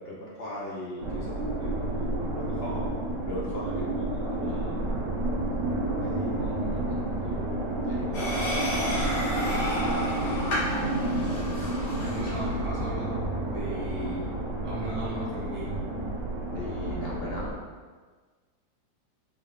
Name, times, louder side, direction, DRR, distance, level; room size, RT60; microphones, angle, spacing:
voice 1, 0.0-2.9 3.2-4.8 6.0-7.0 7.2-9.7 10.1-10.4 16.5-17.6, left 1 dB, 55° left, -5 dB, 0.7 m, -39 dB
sound 1, 1.0-17.5, right 2 dB, 65° right, 0.7 m, -30 dB
sound 2, 8.1-12.5, left 1 dB, 90° left, 2.2 m, -31 dB
voice 2, 12.0-14.4 14.6-15.8, right 1 dB, 25° right, -8 dB, 0.8 m, -36 dB
5.4 x 3.4 x 2.3 m, 1.5 s
omnidirectional pair, 2.0 m